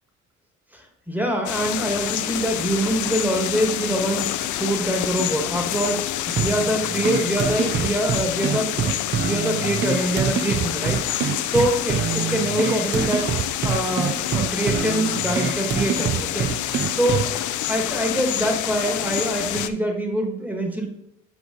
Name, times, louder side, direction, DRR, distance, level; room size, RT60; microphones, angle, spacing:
voice 1, 0.7-6.0 6.3-8.7 9.2-11.0 11.5-13.2 13.6-16.5 16.9-17.3 17.7-20.9, right 1 dB, 5° right, 2 dB, 1.5 m, -24 dB
sound 1, 1.5-19.7, left 12 dB, 75° left, 0.5 m, -27 dB
sound 2, 6.4-17.4, right 8 dB, 40° right, 0.4 m, -26 dB
7.2 x 4.8 x 3.8 m, 0.80 s
cardioid pair, 90°, 30 cm